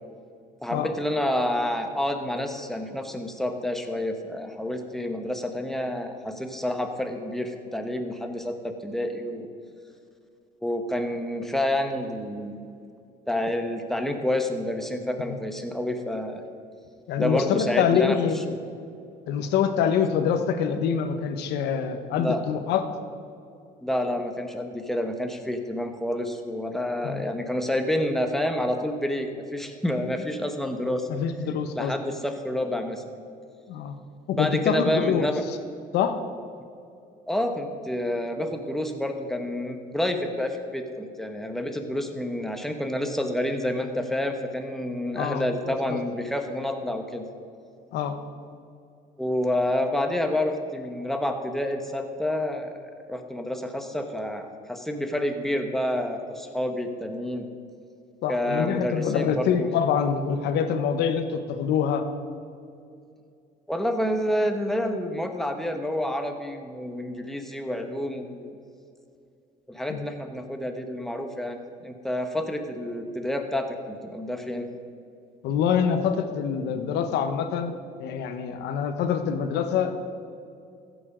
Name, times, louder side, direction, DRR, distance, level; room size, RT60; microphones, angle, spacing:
voice 1, 0.6-9.5 10.6-12.6 13.3-16.4 17.2-18.4 22.2-22.4 23.8-31.1 31.8-33.0 34.4-35.4 37.3-47.3 49.2-57.5 58.3-59.7 63.7-68.6 69.7-74.7, left 1 dB, ahead, 5 dB, 1.2 m, -29 dB
voice 2, 17.1-18.5 19.3-22.9 27.0-27.2 31.1-31.9 33.7-33.9 34.3-35.3 35.9-36.1 45.2-46.0 47.9-48.2 58.2-62.0 69.9-70.1 75.4-77.7 78.0-80.1, left 7 dB, 80° left, 8 dB, 1.0 m, -25 dB
15.0 x 7.1 x 5.0 m, 2.5 s
cardioid pair, 110°, 17 cm